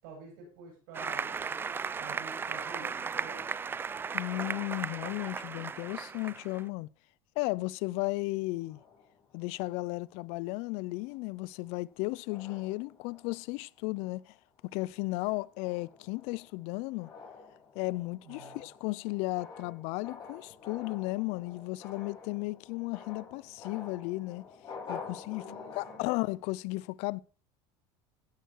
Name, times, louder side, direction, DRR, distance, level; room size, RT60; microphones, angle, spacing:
voice 1, 0.0-1.3 2.0-3.4 18.2-18.6 25.4-26.0, right 4 dB, 80° right, 7.5 m, -49 dB
Applause, 0.9-6.6, right 5 dB, 20° right, 0.4 m, -36 dB
voice 2, 4.1-6.9 7.4-8.8 9.3-14.4 14.6-17.1 17.8-24.5 24.9-25.5 25.7-27.2, left 22 dB, 70° left, 0.4 m, -35 dB
sound 1, 8.5-10.3 11.0-11.2 11.6-11.9 12.3-13.6 14.0-14.4 14.8-26.4, left 5 dB, 35° left, 4.0 m, -48 dB
16.0 x 6.5 x 4.5 m
supercardioid pair, 110°, 11 cm